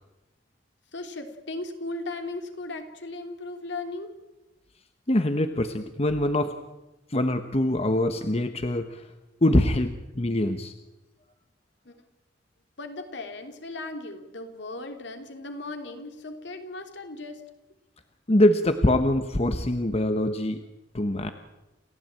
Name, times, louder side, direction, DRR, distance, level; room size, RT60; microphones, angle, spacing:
voice 1, 0.9-4.1 11.8-12.0 12.8-17.4, left 2 dB, 65° left, 6 dB, 3.1 m, -37 dB
voice 2, 5.1-6.5 7.1-9.0 9.4-10.7 18.3-20.6 20.9-21.3, left 1 dB, 35° left, 9 dB, 1.0 m, -24 dB
29.0 x 16.0 x 8.9 m, 1.0 s
head